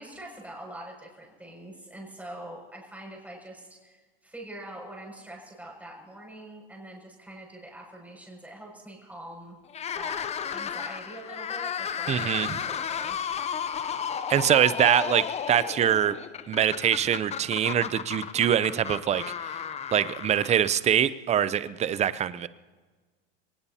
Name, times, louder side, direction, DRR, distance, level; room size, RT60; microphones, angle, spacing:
voice 1, 0.0-9.6 9.9-13.2, right 1 dB, 5° right, -1 dB, 6.3 m, -44 dB
sound 1, 9.7-21.0, left 8 dB, 20° left, 0.6 m, -33 dB
voice 2, 12.1-12.5 14.3-16.2 16.5-19.2 19.9-22.5, right 9 dB, 20° right, 16 dB, 0.5 m, -24 dB
23.0 x 19.0 x 2.8 m, 1.4 s
supercardioid pair, 125°, 30 cm